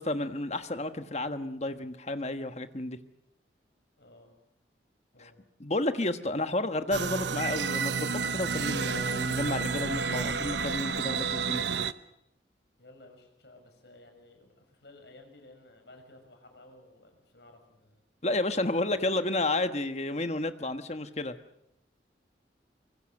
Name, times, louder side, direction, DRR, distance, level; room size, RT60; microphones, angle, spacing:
voice 1, 0.0-3.0 5.2-5.3 5.6-11.6 18.2-21.4, left 2 dB, 35° left, 9 dB, 1.3 m, -31 dB
voice 2, 4.0-4.3 5.1-5.4 6.1-6.2 12.8-18.0 18.8-19.1, left 2 dB, 65° left, 4 dB, 6.5 m, -55 dB
sound 1, 6.9-11.9, right 5 dB, 75° right, 0.9 m, -30 dB
24.5 x 24.0 x 6.6 m, 0.81 s
head